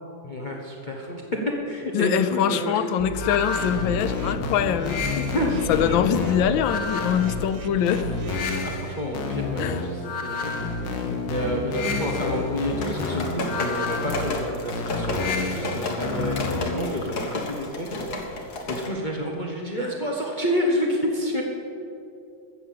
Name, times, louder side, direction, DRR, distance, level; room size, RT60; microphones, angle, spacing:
voice 1, 0.2-2.9 5.1-6.3 8.6-11.0 11.3-21.4, equal, 30° left, -1 dB, 1.2 m, -29 dB
voice 2, 1.9-5.2 5.7-8.0 9.6-9.8, left 9 dB, 90° left, 10 dB, 1.4 m, -23 dB
sound 1, 3.0-8.3, right 2 dB, 60° right, 0.8 m, -36 dB
sound 2, 3.1-16.9, left 4 dB, 70° left, 1.8 m, -29 dB
sound 3, 12.8-18.9, left 2 dB, 55° left, 1.9 m, -32 dB
14.0 x 7.1 x 7.7 m, 2.7 s
omnidirectional pair, 2.0 m